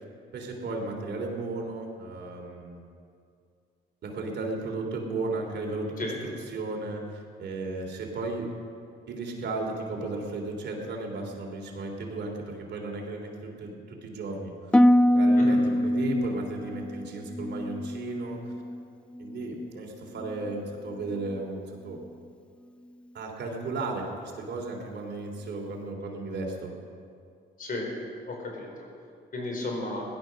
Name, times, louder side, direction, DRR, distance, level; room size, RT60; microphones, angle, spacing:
voice 1, 0.3-2.9 4.0-8.5 9.1-14.8 15.1-18.4 19.2-22.0 23.1-26.7, right 3 dB, 60° right, 1 dB, 3.3 m, -35 dB
Harp, 14.7-18.8 19.1-19.7 20.2-20.5, left 1 dB, 5° left, 0.5 m, -24 dB
voice 2, 27.6-27.9 28.3-28.9 29.3-30.0, left 2 dB, 45° left, 0 dB, 4.5 m, -33 dB
17.0 x 12.0 x 6.4 m, 2.3 s
cardioid pair, 90°, 20 cm